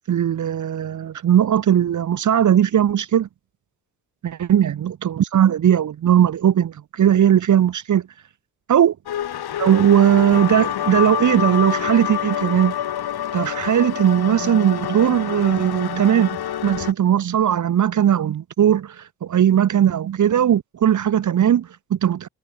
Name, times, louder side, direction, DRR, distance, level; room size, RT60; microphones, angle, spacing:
voice 1, 0.1-3.3 4.2-8.0 8.7-8.9 9.6-12.7 13.3-19.0 19.2-22.3, right 10 dB, 40° right, 0.8 m, -18 dB
sound 1, 9.1-16.9, left 10 dB, 55° left, 1.7 m, -27 dB
hypercardioid pair, 40°, 45 cm